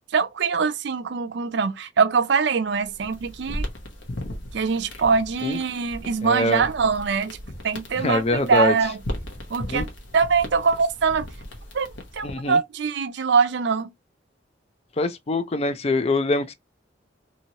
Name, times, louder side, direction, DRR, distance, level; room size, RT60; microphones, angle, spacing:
voice 1, 0.1-3.7 4.5-7.4 7.6-9.0 9.5-9.9 10.1-11.3 11.7-11.9 12.1-13.9, right 5 dB, 65° right, 0.5 m, -23 dB
sound 1, 2.7-12.5, left 1 dB, 75° left, 1.0 m, -37 dB
voice 2, 6.2-6.6 8.0-8.7 9.7-9.9 12.2-12.6 15.0-16.5, left 2 dB, 35° left, 0.4 m, -23 dB
2.9 x 2.7 x 2.8 m
head